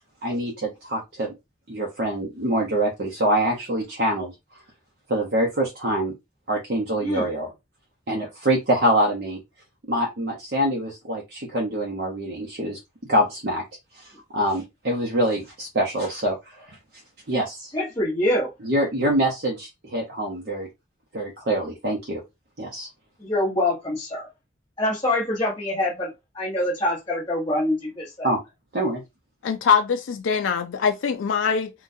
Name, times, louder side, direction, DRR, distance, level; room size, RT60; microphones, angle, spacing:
voice 1, 0.2-1.3 1.7-4.3 5.1-6.1 6.5-7.5 8.1-9.4 9.9-12.8 13.1-13.6 13.9-16.8 17.3-17.7 18.6-20.7 21.1-22.2 22.6-22.9 28.2-28.4 28.7-29.0, right 1 dB, 55° right, 0.7 m, -25 dB
voice 2, 17.7-18.5 23.2-24.3 24.8-26.1 26.3-28.3, left 1 dB, 25° left, 1.0 m, -25 dB
voice 3, 29.4-31.7, left 6 dB, 85° left, 0.4 m, -22 dB
3.8 x 2.3 x 2.6 m
head